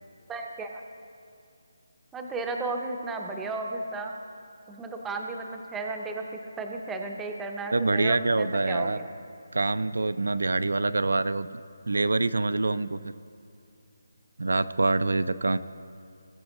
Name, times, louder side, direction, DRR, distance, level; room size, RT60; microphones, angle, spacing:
voice 1, 0.3-0.8 2.1-4.1 4.7-9.1, right 3 dB, 5° right, 2 dB, 0.5 m, -34 dB
voice 2, 7.7-9.0 9.5-11.5 11.9-13.1 14.4-15.6, right 3 dB, 85° right, 13 dB, 0.4 m, -25 dB
19.5 x 7.6 x 3.0 m, 2.5 s
hypercardioid pair, 170°, 0 cm